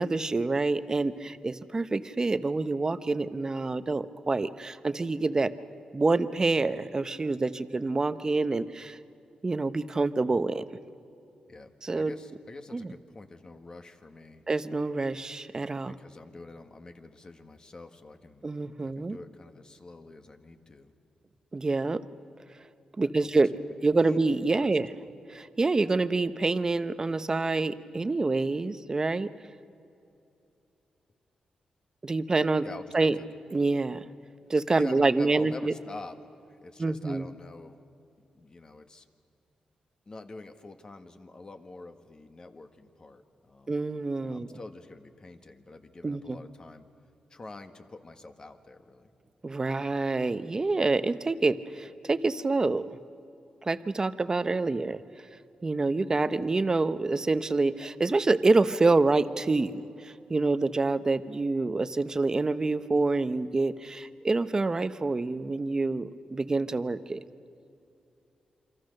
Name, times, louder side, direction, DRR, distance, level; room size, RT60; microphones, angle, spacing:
voice 1, 0.0-5.5 5.9-9.0 9.4-10.6 11.8-12.1 12.7-12.9 14.5-15.9 18.4-19.2 21.5-22.0 23.0-23.5 23.8-24.9 25.3-29.3 32.0-32.7 32.9-33.2 33.5-34.0 34.5-35.7 36.8-37.3 43.7-44.5 46.0-46.4 49.4-52.9 53.7-55.0 55.6-67.2, right 3 dB, 30° right, 12 dB, 0.8 m, -27 dB
voice 2, 11.5-14.4 15.9-18.4 18.8-20.9 23.2-23.3 23.7-23.8 24.1-24.2 24.6-24.7 25.0-25.1 32.6-33.3 34.7-36.2 36.5-37.8 38.3-39.1 40.0-43.8 44.2-46.9 47.3-49.1, left 2 dB, 35° left, 7 dB, 1.6 m, -46 dB
28.0 x 24.5 x 6.6 m, 2.7 s
cardioid pair, 90°, 2 cm